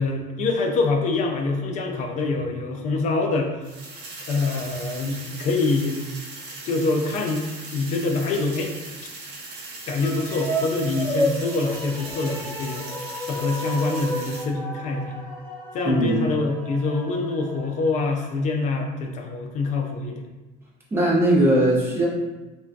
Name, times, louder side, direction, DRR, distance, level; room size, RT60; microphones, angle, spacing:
voice 1, 0.0-3.5 4.3-6.0 6.6-7.4 7.7-8.7 9.9-12.9 13.3-15.2 15.7-20.2, left 3 dB, 40° left, 3 dB, 0.4 m, -25 dB
sound 1, 3.6-14.4, right 3 dB, 85° right, 0.8 m, -39 dB
sound 2, 9.9-18.4, equal, 5° left, 0.9 m, -32 dB
voice 2, 15.8-16.2 20.9-22.1, right 1 dB, 10° right, -6 dB, 0.6 m, -19 dB
3.4 x 2.2 x 2.5 m, 1.1 s
cardioid pair, 175°, 19 cm